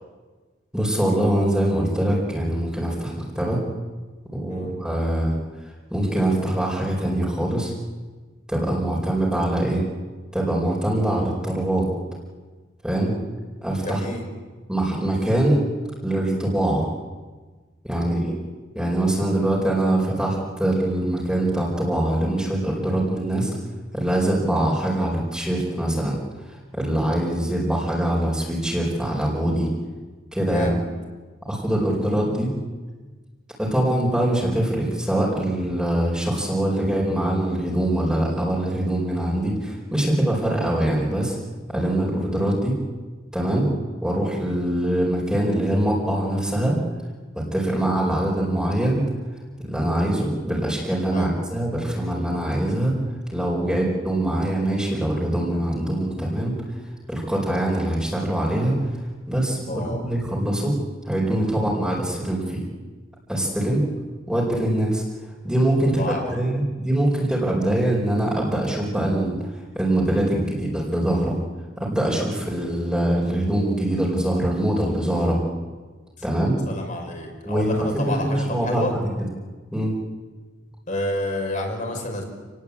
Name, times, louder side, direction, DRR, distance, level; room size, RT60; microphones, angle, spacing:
voice 1, 0.7-3.6 4.3-5.4 5.9-7.7 8.5-9.8 10.3-11.9 12.8-13.1 13.6-14.0 14.7-15.7 16.0-16.9 17.8-18.3 18.7-23.5 23.9-26.2 26.5-29.7 30.3-30.7 31.5-32.5 33.6-41.4 41.7-42.8 43.3-43.7 44.0-46.8 47.3-49.0 49.6-53.0 53.3-56.6 57.1-58.8 59.3-60.8 61.1-62.6 63.3-63.8 64.3-65.0 65.4-71.4 71.8-75.4 76.2-76.6 77.4-79.0 79.7-79.9, right 1 dB, 5° right, -4 dB, 4.8 m, -23 dB
voice 2, 13.8-14.2 18.0-18.2 27.0-27.2 30.5-30.8 40.4-40.5 43.6-43.8 47.7-47.9 51.1-51.3 53.6-53.8 57.3-57.4 59.6-60.0 61.5-61.7 63.6-63.8 65.8-66.4 72.3-72.4 76.7-78.9 80.9-82.2, left 1 dB, 40° left, 2 dB, 5.9 m, -30 dB
29.0 x 19.5 x 8.6 m, 1.4 s
head